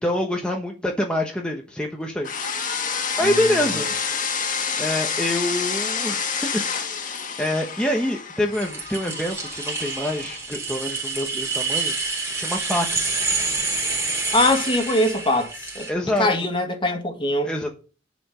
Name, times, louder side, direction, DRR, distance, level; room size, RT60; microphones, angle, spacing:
voice 1, 0.0-2.3 3.2-3.9 4.8-13.2 15.9-16.3 17.4-17.7, left 1 dB, 5° left, 1.1 m, -26 dB
sound 1, 2.2-10.4, left 6 dB, 45° left, 1.7 m, -28 dB
voice 2, 3.2-3.8 14.3-15.9 16.2-17.5, left 1 dB, 30° left, 2.0 m, -22 dB
sound 2, 8.5-15.9, right 3 dB, 15° right, 3.4 m, -28 dB
10.5 x 5.2 x 7.7 m
head